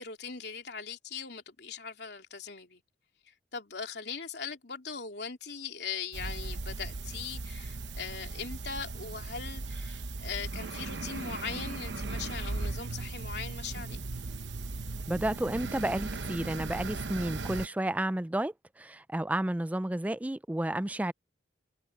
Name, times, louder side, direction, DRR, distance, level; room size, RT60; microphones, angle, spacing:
voice 1, 0.0-2.8 3.3-14.0, left 6 dB, 65° left, 3.5 m, -40 dB
sound 1, 6.1-17.7, right 3 dB, 75° right, 1.0 m, -37 dB
voice 2, 15.1-21.1, right 1 dB, 10° right, 0.3 m, -31 dB
head